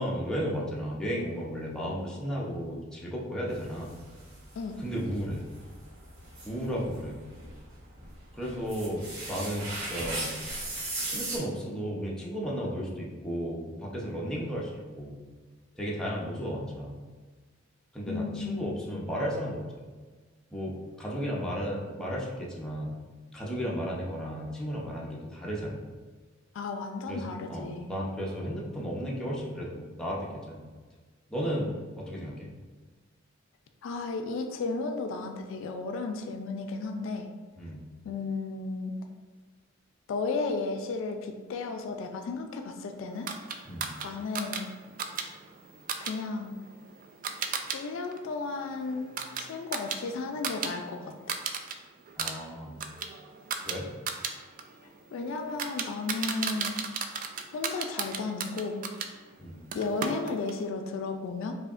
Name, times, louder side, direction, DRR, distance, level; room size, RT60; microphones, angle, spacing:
voice 1, 0.0-4.0 4.8-5.4 6.4-7.2 8.3-10.4 11.1-15.2 15.8-17.0 17.9-19.6 20.5-22.9 23.3-25.9 27.1-30.6 31.3-32.5 37.6-37.8 43.7-43.9 52.2-52.8 53.6-53.9 59.4-59.6, equal, 5° left, -5 dB, 0.6 m, -34 dB
sound 1, 3.5-11.4, right 2 dB, 85° right, 1.4 m, -39 dB
voice 2, 18.1-18.6 26.5-27.9 33.8-37.3 38.0-38.9 40.1-43.3 44.0-44.7 46.0-46.6 47.7-49.1 49.4-51.4 55.1-56.8 57.5-58.8 59.7-61.5, left 3 dB, 65° left, 5 dB, 0.3 m, -34 dB
sound 2, 43.3-47.8 48.1-50.7 51.0-51.7 52.1-59.1 59.7-60.6, right 6 dB, 45° right, 0.3 m, -36 dB
4.8 x 2.7 x 2.4 m, 1.4 s
head